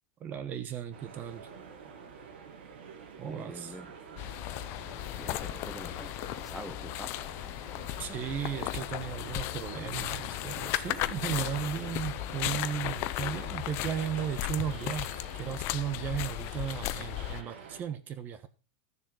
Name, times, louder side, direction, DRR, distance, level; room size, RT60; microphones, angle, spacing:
voice 1, 0.2-1.5 3.2-3.8 8.0-18.5, right 9 dB, 35° right, 11 dB, 1.3 m, -35 dB
sound 1, 0.9-17.8, right 6 dB, 85° right, 2.6 m, -49 dB
voice 2, 3.2-3.9 5.2-7.3, equal, ahead, 6 dB, 1.0 m, -45 dB
sound 2, 4.2-17.4, left 17 dB, 45° left, 0.6 m, -36 dB
12.5 x 7.0 x 5.0 m, 0.33 s
supercardioid pair, 135°, 6 cm